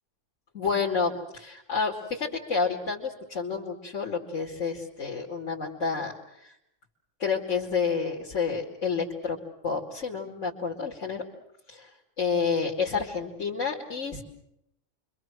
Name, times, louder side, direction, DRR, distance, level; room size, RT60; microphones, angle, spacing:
voice 1, 0.5-6.5 7.2-9.4 9.6-11.2 11.7-11.9 12.2-14.2, left 5 dB, 85° left, -2 dB, 2.8 m, -29 dB
29.0 x 24.5 x 6.2 m, 0.80 s
omnidirectional pair, 1.3 m